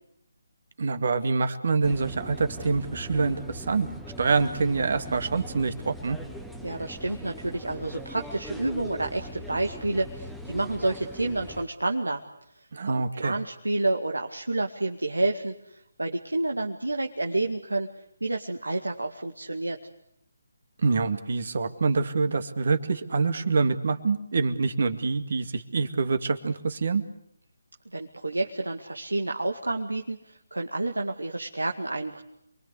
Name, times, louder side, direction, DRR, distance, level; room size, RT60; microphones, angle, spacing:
voice 1, 0.8-3.9 4.2-6.2 12.7-13.3 20.8-27.0, right 4 dB, 55° right, 9 dB, 2.3 m, -26 dB
sound 1, 1.8-11.6, equal, ahead, 1.8 m, -41 dB
voice 2, 6.6-12.2 12.5-17.9 18.2-19.8 27.9-32.2, right 2 dB, 85° right, 3 dB, 2.0 m, -29 dB
28.0 x 22.5 x 8.4 m, 0.76 s
figure-of-eight pair, 150°, 0 cm